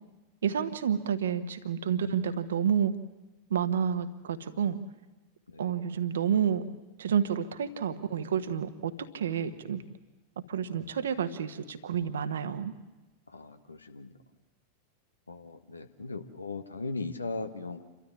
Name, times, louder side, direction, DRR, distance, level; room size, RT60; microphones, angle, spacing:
voice 1, 0.4-2.9 3.5-4.8 5.6-6.7 7.0-9.8 10.5-12.7, right 8 dB, 65° right, 10 dB, 1.3 m, -29 dB
voice 2, 13.3-14.1 15.3-17.8, left 3 dB, 80° left, 8 dB, 1.4 m, -38 dB
28.5 x 13.0 x 9.7 m, 1.1 s
figure-of-eight pair, 90°, 0 cm